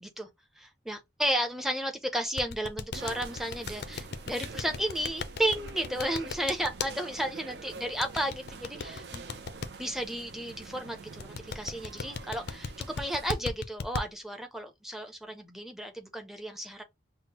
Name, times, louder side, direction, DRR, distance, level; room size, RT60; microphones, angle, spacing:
voice 1, 0.6-9.3 9.8-16.8, right 1 dB, ahead, 0.6 m, -33 dB
sound 1, 2.4-6.9 8.0-9.7 11.2-14.0, left 5 dB, 55° left, 0.4 m, -36 dB
sound 2, 2.9-13.3, right 4 dB, 60° right, 0.5 m, -45 dB
5.6 x 2.1 x 2.9 m
head